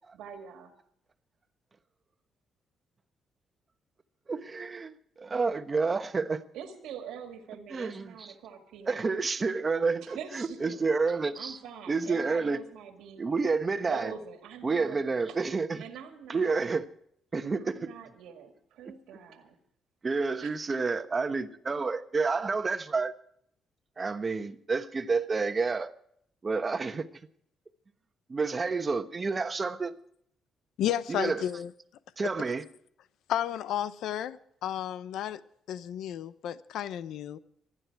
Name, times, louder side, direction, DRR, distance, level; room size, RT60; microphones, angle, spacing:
voice 1, 0.1-0.7 6.5-9.2 10.1-10.9 11.4-13.3 13.8-15.4 15.8-16.6 17.6-19.6 20.4-20.5, right 8 dB, 90° right, 2.0 m, -44 dB
voice 2, 4.3-6.4 7.7-8.4 8.8-11.6 11.9-12.6 13.2-14.1 14.6-15.9 16.3-16.9 17.3-17.9 20.0-23.1 24.0-25.9 26.4-27.1 28.3-29.9 31.1-31.5 32.2-32.7, right 4 dB, 30° right, 1.1 m, -29 dB
voice 3, 30.8-31.7 33.3-35.4 35.7-37.4, left 11 dB, 80° left, 0.7 m, -32 dB
24.5 x 9.9 x 4.7 m
cardioid pair, 90°, 0 cm